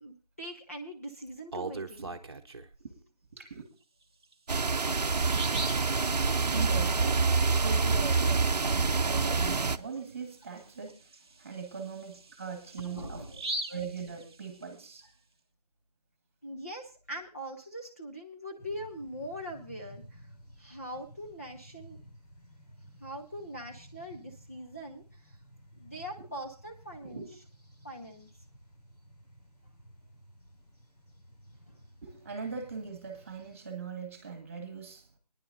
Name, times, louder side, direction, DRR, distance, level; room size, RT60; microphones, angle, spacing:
voice 1, 0.0-2.2 12.8-13.4 16.4-20.3 20.6-22.0 23.0-25.4 25.8-27.2 27.8-28.3 31.7-31.8, equal, 20° left, 0.7 m, -42 dB
Bird vocalization bird call bird song, 1.3-2.8 4.2-4.3 4.8-4.9 5.2-5.9 9.4-9.5 9.9-10.0 10.6-14.8, right 2 dB, 40° right, 0.9 m, -40 dB
voice 2, 2.0-2.4 2.8-3.0 3.3-3.6 6.4-11.1 11.4-13.4 13.7-15.1 27.0-27.3 32.0-35.0, right 5 dB, 20° right, 1.7 m, -41 dB
sound 1, 4.5-9.8, right 4 dB, 85° right, 0.7 m, -26 dB
sound 2, 18.6-33.6, equal, 80° left, 6.0 m, -55 dB
22.5 x 10.0 x 2.6 m
figure-of-eight pair, 170°, 20 cm